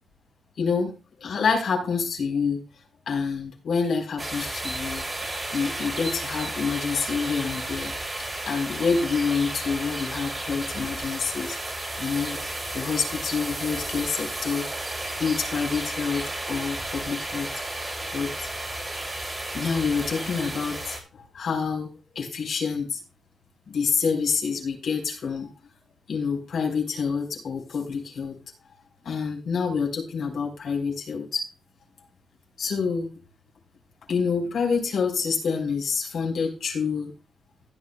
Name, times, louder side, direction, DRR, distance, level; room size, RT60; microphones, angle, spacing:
voice 1, 0.6-2.6 3.1-11.6 12.0-12.4 12.7-14.7 15.2-17.5 17.8-18.5 19.5-21.9 22.1-23.0 23.7-25.5 26.1-28.4 29.0-31.5 32.6-33.1 34.1-37.1, left 5 dB, 70° left, 1 dB, 4.1 m, -27 dB
sound 1, 4.2-21.0, right 1 dB, 25° right, 2.9 m, -33 dB
16.0 x 10.0 x 2.3 m, 0.30 s
wide cardioid pair, 140°, 0 cm